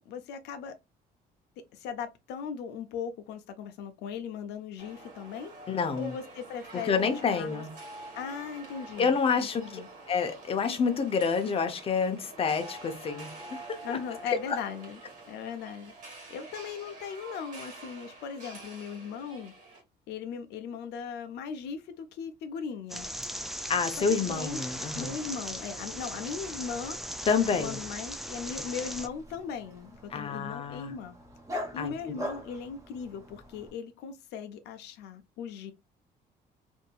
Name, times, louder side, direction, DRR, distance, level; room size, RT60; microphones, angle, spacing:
voice 1, 0.1-0.7 1.7-5.5 6.0-7.6 8.1-9.9 13.8-15.0 15.3-19.5 20.1-23.1 24.1-24.6 24.9-27.0 27.5-31.1 31.7-35.7, left 6 dB, 80° left, 0.5 m, -38 dB
sound 1, 4.8-19.8, right 2 dB, 50° right, 1.5 m, -47 dB
voice 2, 5.7-6.1 6.8-7.7 9.0-9.6 10.1-14.0 14.3-14.6 23.7-25.1 27.3-27.8 30.1-30.9 31.8-31.9, left 5 dB, 35° left, 0.6 m, -28 dB
sound 2, 22.9-29.1, equal, ahead, 0.3 m, -38 dB
Dog, 28.4-33.7, equal, 20° right, 1.1 m, -42 dB
2.6 x 2.6 x 2.3 m
cardioid pair, 110°, 17 cm